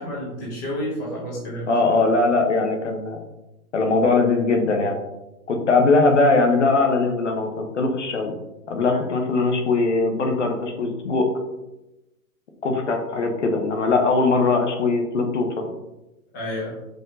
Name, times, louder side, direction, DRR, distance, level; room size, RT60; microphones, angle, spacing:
voice 1, 0.0-1.7 16.3-16.8, equal, 15° left, -6 dB, 0.9 m, -30 dB
voice 2, 1.7-3.2 3.7-4.9 5.5-8.3 8.7-11.3 12.6-15.7, left 3 dB, 50° left, 3 dB, 1.3 m, -20 dB
6.1 x 5.3 x 4.0 m, 0.96 s
hypercardioid pair, 175°, 44 cm